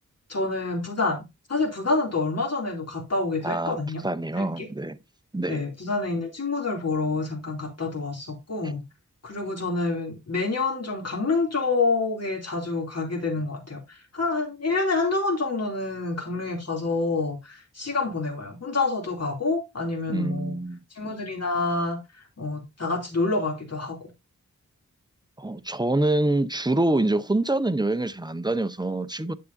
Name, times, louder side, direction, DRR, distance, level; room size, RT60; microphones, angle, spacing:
voice 1, 0.3-1.2 1.5-4.0 4.4-4.7 5.5-8.8 9.2-20.6 20.9-22.0 22.4-24.1, left 3 dB, 50° left, 2.8 m, -27 dB
voice 2, 3.4-3.8 4.0-5.0 5.3-5.6 8.6-8.7 20.1-20.8 25.4-29.3, right 2 dB, 15° right, 0.6 m, -25 dB
9.4 x 6.8 x 2.6 m
wide cardioid pair, 70°, 32 cm